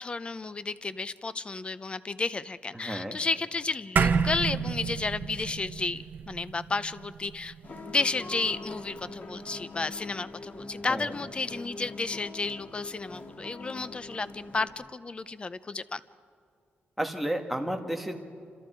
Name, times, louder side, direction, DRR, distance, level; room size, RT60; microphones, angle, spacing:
voice 1, 0.0-7.5 7.9-16.0, left 3 dB, 30° left, 15 dB, 0.7 m, -32 dB
voice 2, 2.7-3.2 10.9-11.2 17.0-18.2, right 1 dB, ahead, 3 dB, 2.0 m, -32 dB
sound 1, 4.0-8.6, right 6 dB, 55° right, 1.1 m, -30 dB
sound 2, 7.6-14.7, left 2 dB, 45° left, 3.7 m, -43 dB
28.5 x 26.5 x 4.6 m, 2.3 s
cardioid pair, 115°, 4 cm